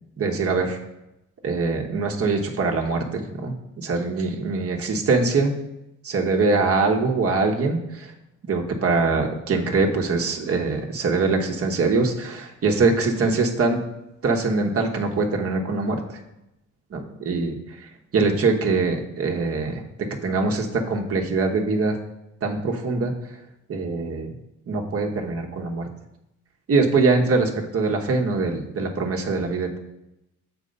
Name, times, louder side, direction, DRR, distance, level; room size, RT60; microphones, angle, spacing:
voice 1, 0.2-0.8 1.4-5.5 6.0-8.1 8.5-13.8 14.2-16.2 16.9-19.8 20.2-22.0 22.4-23.1 23.7-24.3 24.7-25.9 26.7-29.8, right 3 dB, 50° right, 2 dB, 1.2 m, -23 dB
6.6 x 4.6 x 5.3 m, 0.89 s
cardioid pair, 90°, 30 cm